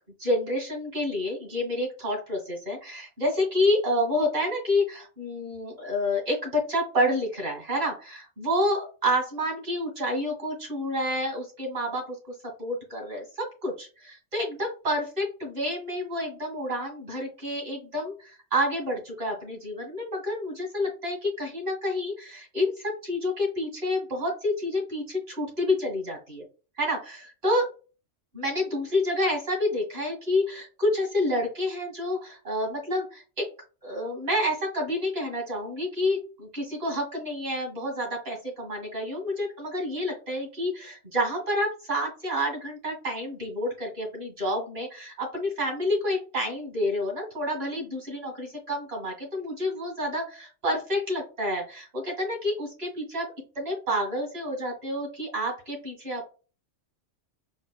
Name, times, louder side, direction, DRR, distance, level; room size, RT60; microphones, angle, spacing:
voice 1, 0.2-26.4 26.8-27.7 28.3-33.5 33.8-53.3 53.6-56.2, left 1 dB, 55° right, 0 dB, 2.5 m, -29 dB
5.2 x 2.4 x 2.3 m, 0.34 s
omnidirectional pair, 1.3 m